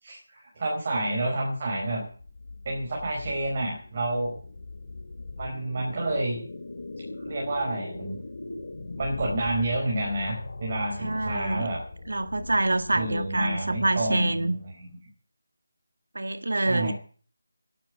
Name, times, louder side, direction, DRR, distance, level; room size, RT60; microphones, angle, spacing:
voice 1, 0.0-2.0 2.6-4.3 5.4-6.4 7.3-8.2 9.0-11.8 12.9-14.9 16.5-16.9, right 1 dB, 30° right, -2 dB, 5.0 m, -29 dB
sound 1, 2.0-14.9, left 2 dB, 55° left, 3.0 m, -40 dB
voice 2, 11.0-11.7 12.1-14.6 16.2-16.9, right 2 dB, 80° right, 11 dB, 1.7 m, -26 dB
11.5 x 11.5 x 8.5 m, 0.42 s
figure-of-eight pair, 170°, 0 cm